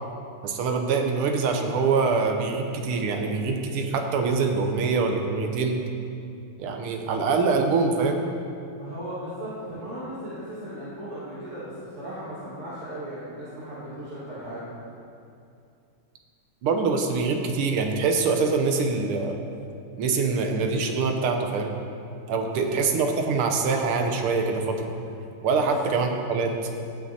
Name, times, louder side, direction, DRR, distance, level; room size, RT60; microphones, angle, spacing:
voice 1, 0.4-5.8 6.6-8.3 16.6-19.4 20.0-21.7 22.3-24.9 25.4-26.5, right 4 dB, 90° right, 4 dB, 1.7 m, -24 dB
voice 2, 8.8-14.7 22.3-22.8 25.5-25.7, right 1 dB, 35° right, -12 dB, 2.0 m, -37 dB
16.0 x 5.9 x 2.8 m, 2.5 s
omnidirectional pair, 2.3 m